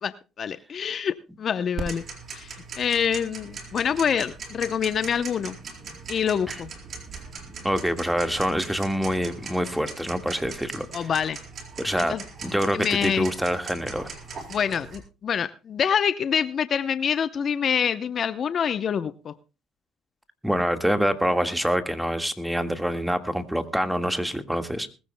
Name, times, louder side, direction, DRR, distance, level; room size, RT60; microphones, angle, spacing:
voice 1, 0.0-2.0 2.3-5.6 6.1-6.7 10.9-11.4 12.1-12.2 12.7-13.3 14.5-19.3, left 7 dB, 50° left, 13 dB, 0.7 m, -26 dB
Tick-tock, 1.8-15.0, right 4 dB, 50° right, 4.2 m, -40 dB
voice 2, 7.6-11.1 11.8-12.2 12.4-14.1 20.4-24.9, equal, 5° right, 8 dB, 1.7 m, -26 dB
21.0 x 15.0 x 2.2 m, 0.31 s
supercardioid pair, 75°, 0 cm